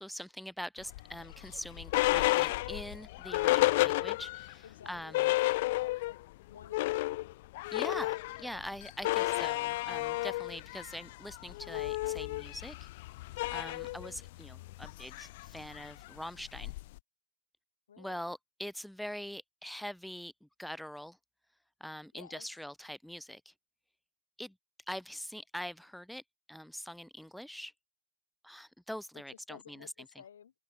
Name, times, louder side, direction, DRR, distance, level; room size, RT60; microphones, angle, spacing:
voice 1, 0.0-5.3 7.7-12.8 13.5-16.7 18.0-21.2 21.8-23.5 24.4-24.5 24.9-26.2 26.5-27.7 28.4-30.1, equal, ahead, 0.8 m, -43 dB
sound 1, 0.9-4.5 4.9-5.0 5.1-6.2 6.5-17.0, left 19 dB, 45° left, 1.3 m, -32 dB
voice 2, 4.6-6.2 6.5-7.3 13.8-14.1 17.9-18.3 22.1-22.5 29.5-30.5, left 8 dB, 85° left, 3.5 m, -53 dB
open air
hypercardioid pair, 155°, 0 cm